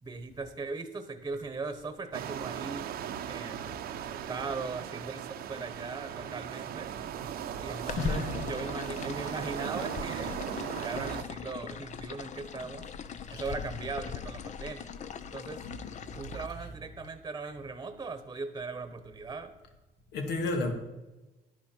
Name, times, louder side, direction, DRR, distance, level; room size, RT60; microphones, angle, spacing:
voice 1, 0.0-6.9 7.6-8.2 8.5-10.4 10.7-12.8 13.3-14.9 15.3-15.6 16.1-19.5, right 4 dB, 20° right, 1.1 m, -39 dB
sound 1, 2.1-11.2, right 10 dB, 65° right, 0.8 m, -38 dB
voice 2, 7.8-8.4 13.3-13.5 20.1-20.7, left 2 dB, 80° left, 2.0 m, -32 dB
sound 2, 7.9-16.5, left 7 dB, 45° left, 0.7 m, -40 dB
11.0 x 11.0 x 4.5 m
cardioid pair, 110°, 17 cm